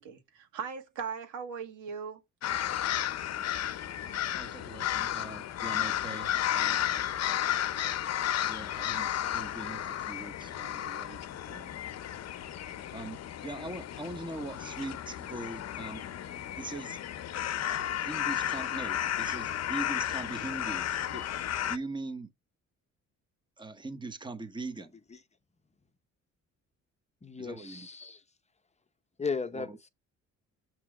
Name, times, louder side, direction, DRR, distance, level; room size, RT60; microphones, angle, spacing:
voice 1, 0.0-2.2, right 6 dB, 90° right, 1.9 m, -39 dB
sound 1, 2.4-21.8, left 11 dB, 60° left, 0.7 m, -33 dB
voice 2, 4.4-6.9 8.5-11.7 12.9-16.0 16.6-17.0 17.6-21.3 21.7-22.3 23.6-24.9 27.4-27.9 29.5-29.8, right 2 dB, 15° right, 1.0 m, -41 dB
voice 3, 27.2-28.2 29.2-29.9, left 4 dB, 20° left, 0.8 m, -36 dB
7.4 x 3.0 x 4.8 m
cardioid pair, 90°, 30 cm